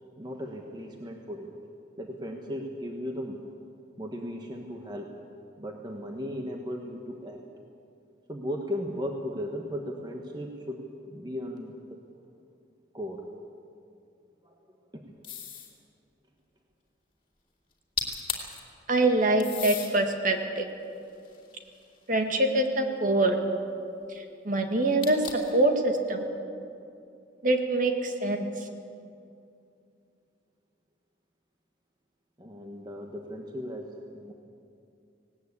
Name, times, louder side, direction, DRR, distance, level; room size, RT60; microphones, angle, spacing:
voice 1, 0.2-1.5 2.0-3.5 4.0-5.1 5.6-7.4 8.3-11.7 12.9-13.3 14.4-14.6 14.9-15.1 32.4-34.3, equal, 20° right, 2 dB, 1.3 m, -36 dB
sound 1, 15.2-15.8 17.7-17.8 18.0-18.6 19.4-19.9 20.6-22.1 25.0-25.6, left 7 dB, 30° left, 2.7 m, -35 dB
voice 2, 18.9-20.7 22.1-23.4 24.2-25.2 25.5-26.2 27.4-28.5, right 2 dB, 45° right, 4 dB, 1.9 m, -24 dB
19.0 x 19.0 x 8.5 m, 2.5 s
head